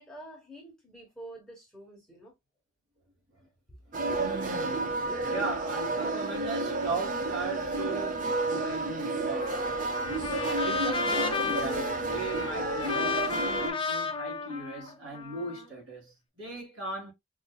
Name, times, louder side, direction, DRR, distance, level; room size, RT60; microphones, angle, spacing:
voice 1, 0.0-2.3 3.7-3.8, right 1 dB, ahead, 1.1 m, -47 dB
sound 1, 3.9-13.7, right 2 dB, 35° right, 0.5 m, -31 dB
voice 2, 4.2-9.6 10.7-17.1, right 3 dB, 65° right, 2.3 m, -38 dB
Trumpet, 9.4-15.7, left 5 dB, 25° left, 0.5 m, -33 dB
4.7 x 2.6 x 2.2 m
head